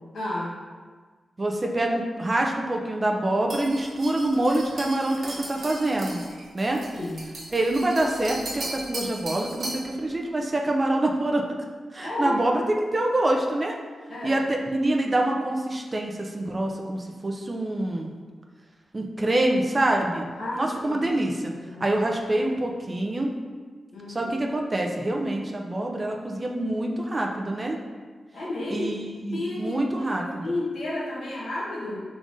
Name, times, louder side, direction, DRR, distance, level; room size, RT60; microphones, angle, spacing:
voice 1, 0.1-0.6 6.9-7.2 12.0-12.4 14.1-14.4 20.4-21.1 21.6-21.8 23.9-24.3 28.3-28.9 29.3-29.8 30.4-32.0, left 2 dB, 75° left, -6 dB, 1.1 m, -31 dB
voice 2, 1.4-6.2 6.5-6.9 7.5-11.6 11.9-12.6 12.9-13.8 14.2-18.1 18.9-20.3 20.6-21.5 21.8-23.3 24.1-27.8 28.7-30.5, right 1 dB, 35° right, 1 dB, 0.5 m, -26 dB
sound 1, 3.5-9.9, right 1 dB, 65° right, 0.8 m, -37 dB
3.7 x 3.5 x 2.6 m, 1.5 s
supercardioid pair, 45°, 0 cm